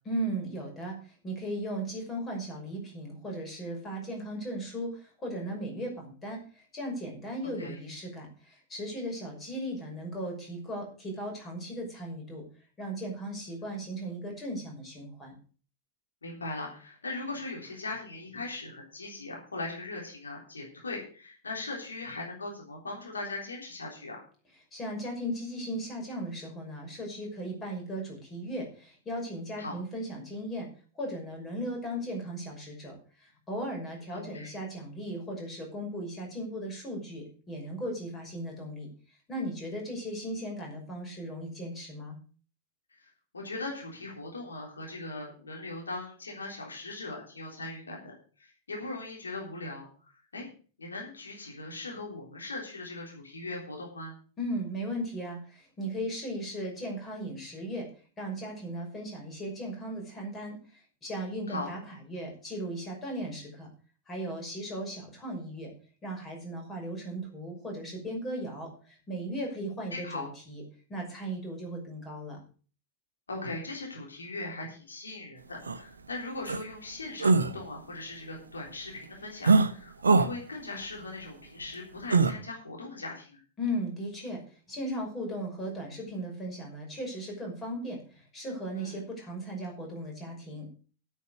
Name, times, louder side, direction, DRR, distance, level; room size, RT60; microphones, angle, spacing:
voice 1, 0.0-12.4 12.8-15.3 24.7-30.7 30.9-42.2 54.4-57.9 58.2-63.7 64.1-65.7 66.0-70.6 70.9-72.4 83.6-90.7, right 1 dB, 20° left, 1 dB, 5.7 m, -37 dB
voice 2, 7.4-7.8 16.2-24.2 29.6-29.8 34.1-34.5 43.0-49.9 50.3-50.5 50.8-54.1 61.5-61.7 69.9-70.3 73.3-83.4 88.8-88.9, left 2 dB, 75° left, -1 dB, 3.5 m, -39 dB
sound 1, 75.7-75.8 76.5-76.6 77.2-77.5 79.4-79.7 80.0-80.3 82.1-82.3, right 4 dB, 75° right, 0.9 m, -21 dB
9.3 x 8.4 x 6.5 m, 0.39 s
figure-of-eight pair, 90°, 0 cm